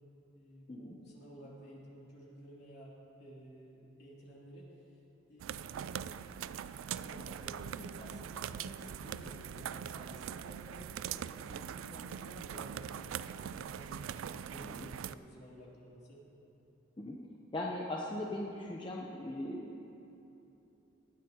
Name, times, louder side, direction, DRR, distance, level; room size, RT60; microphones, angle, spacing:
voice 1, 0.3-2.9 3.2-4.7 5.3-6.1 6.9-11.2 11.5-16.2, equal, 55° left, -5 dB, 3.0 m, -52 dB
sound 1, 5.4-15.1, right 9 dB, 80° right, 0.3 m, -42 dB
voice 2, 17.5-19.8, left 1 dB, 25° left, -3 dB, 0.8 m, -39 dB
18.5 x 13.0 x 2.9 m, 2.9 s
head